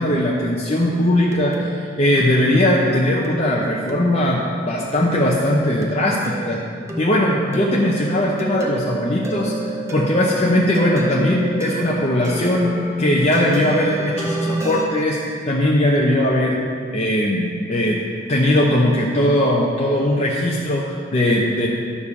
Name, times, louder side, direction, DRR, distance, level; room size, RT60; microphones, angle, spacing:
voice 1, 0.0-6.6 7.0-16.6 16.9-21.7, left 1 dB, 30° left, -3 dB, 0.7 m, -19 dB
sound 1, 1.3-14.9, right 1 dB, 15° right, 0.9 m, -30 dB
11.0 x 5.0 x 6.9 m, 2.3 s
head